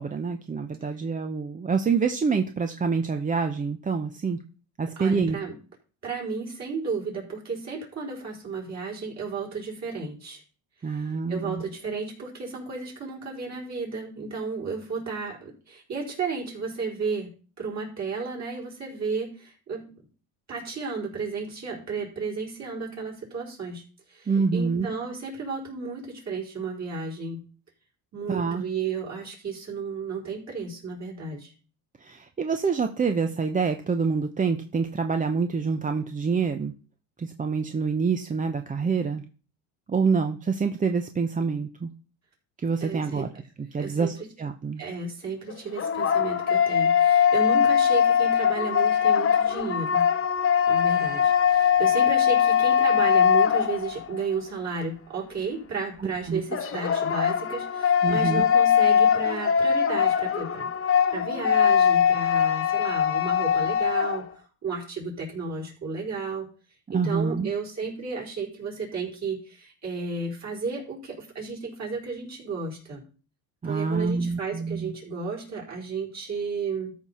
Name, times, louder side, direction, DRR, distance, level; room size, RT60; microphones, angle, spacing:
voice 1, 0.0-4.4 4.8-5.4 10.8-11.6 24.3-24.9 28.3-28.6 32.0-36.7 37.2-39.2 39.9-41.9 42.6-43.3 43.6-44.8 56.0-56.4 58.0-58.4 66.9-67.5 73.6-74.9, right 5 dB, 20° right, 7 dB, 0.6 m, -26 dB
voice 2, 5.0-5.6 6.0-10.4 10.8-19.9 20.5-23.8 24.1-27.4 28.1-31.5 42.8-43.3 43.8-44.1 44.8-50.0 50.7-64.3 64.6-66.5 66.9-73.0 73.6-77.0, right 4 dB, 35° right, -3 dB, 4.7 m, -33 dB
sound 1, 45.5-54.2 56.5-64.3, left 8 dB, 30° left, 1.0 m, -21 dB
13.5 x 5.6 x 4.3 m, 0.38 s
supercardioid pair, 105°, 44 cm